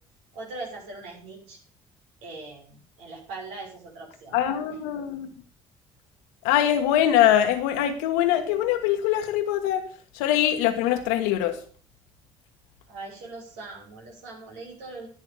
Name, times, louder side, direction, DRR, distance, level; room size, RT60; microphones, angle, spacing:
voice 1, 0.3-1.6 2.2-4.4 12.9-15.1, right 3 dB, 85° right, -1 dB, 6.1 m, -40 dB
voice 2, 4.3-5.3 6.4-9.8 10.1-11.6, left 11 dB, 85° left, 6 dB, 1.4 m, -23 dB
11.5 x 8.1 x 7.1 m, 0.43 s
supercardioid pair, 65°, 14 cm